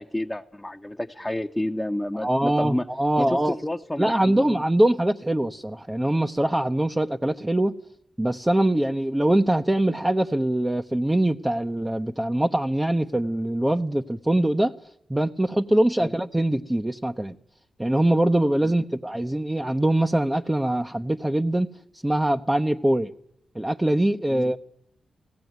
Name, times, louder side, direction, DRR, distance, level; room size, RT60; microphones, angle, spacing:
voice 1, 0.0-2.9 3.2-4.6 16.0-16.1 18.6-18.7 24.3-24.5, left 1 dB, 15° left, 1.0 m, -30 dB
voice 2, 2.2-3.6 4.0-7.7 8.2-14.7 15.1-17.3 17.8-21.7 22.0-23.1 23.5-24.6, right 1 dB, 15° right, 0.9 m, -23 dB
17.5 x 16.0 x 9.4 m
supercardioid pair, 45°, 0 cm